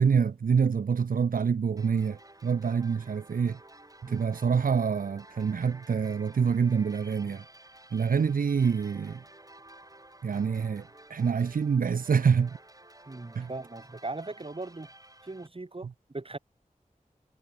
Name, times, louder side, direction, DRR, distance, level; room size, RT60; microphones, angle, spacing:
voice 1, 0.0-3.6 4.0-7.4 7.9-9.2 10.2-12.6 13.3-13.5, right 6 dB, 80° right, 0.5 m, -26 dB
sound 1, 1.8-15.5, right 1 dB, 25° right, 5.2 m, -53 dB
voice 2, 13.1-14.9 15.2-16.4, right 2 dB, 40° right, 2.2 m, -39 dB
wide cardioid pair, 75°, 14 cm